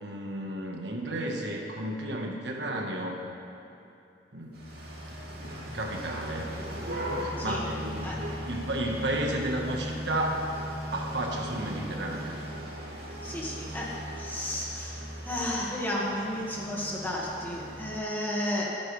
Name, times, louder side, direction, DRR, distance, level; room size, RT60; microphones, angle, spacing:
voice 1, 0.0-3.2 4.3-4.6 5.7-6.6 7.2-8.1 8.4-10.5 10.9-12.4, right 1 dB, 80° right, 0 dB, 1.5 m, -32 dB
sound 1, 4.5-18.0, equal, 60° right, 2.7 m, -38 dB
voice 2, 13.2-18.7, left 1 dB, 10° left, -5 dB, 2.0 m, -33 dB
24.5 x 8.8 x 3.4 m, 2.8 s
head